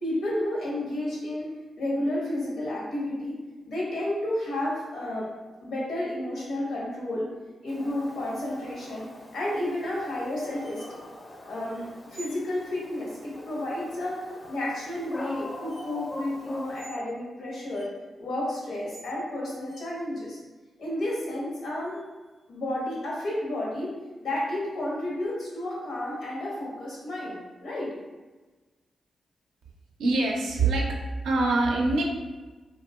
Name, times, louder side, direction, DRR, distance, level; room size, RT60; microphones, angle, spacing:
voice 1, 0.0-1.5 1.8-3.4 3.7-5.3 5.6-7.3 7.6-9.1 9.3-11.1 11.5-14.2 14.5-17.9 18.2-20.4 20.8-22.0 22.5-23.9 24.2-27.9, left 1 dB, 80° left, -5 dB, 0.9 m, -31 dB
Dog, 7.7-16.8, left 1 dB, 45° left, 0.4 m, -42 dB
sound 1, 10.6-11.0 12.1-12.5 14.7-14.8 15.6-15.9 16.7-17.0 17.7-17.9 18.9-19.2 19.6-19.8 21.7-22.3 25.2-25.3, right 3 dB, 35° right, 0.5 m, -49 dB
voice 2, 30.0-31.0 31.2-32.0, right 3 dB, 85° right, -1 dB, 0.4 m, -24 dB
2.8 x 2.3 x 2.2 m, 1.2 s
supercardioid pair, 40°, 0 cm